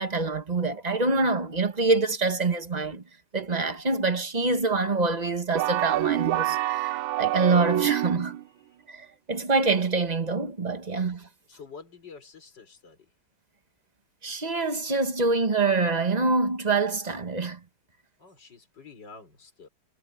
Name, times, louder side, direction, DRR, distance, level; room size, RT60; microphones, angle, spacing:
voice 1, 0.0-3.0 3.3-8.4 8.9-11.3 14.2-17.6, right 3 dB, 25° right, 1.2 m, -25 dB
sound 1, 5.6-8.4, right 14 dB, 75° right, 1.3 m, -26 dB
voice 2, 11.5-13.1 18.2-19.7, left 5 dB, 50° left, 5.3 m, -48 dB
omnidirectional pair, 2.4 m